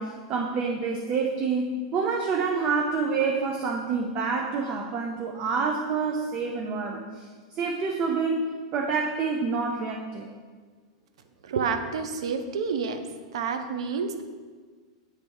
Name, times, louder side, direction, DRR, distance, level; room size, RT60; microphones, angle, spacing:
voice 1, 0.0-8.4 8.7-10.3, right 4 dB, 30° right, 2 dB, 0.6 m, -27 dB
voice 2, 11.4-13.0 13.3-14.2, right 5 dB, 85° right, 8 dB, 0.7 m, -29 dB
8.2 x 3.3 x 4.6 m, 1.5 s
supercardioid pair, 150°, 3 cm